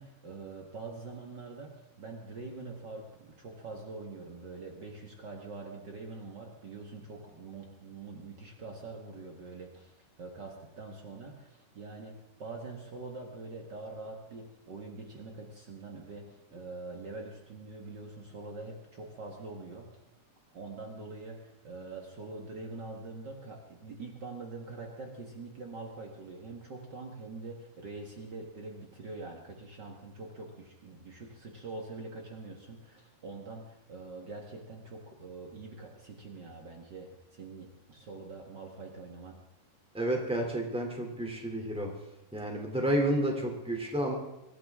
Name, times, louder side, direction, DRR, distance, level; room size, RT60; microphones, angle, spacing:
voice 1, 0.0-19.9 20.5-39.4, right 3 dB, 85° right, 1 dB, 0.9 m, -44 dB
voice 2, 39.9-41.9 42.3-44.1, right 1 dB, ahead, 1 dB, 1.9 m, -30 dB
24.0 x 15.0 x 3.6 m, 0.96 s
omnidirectional pair, 4.7 m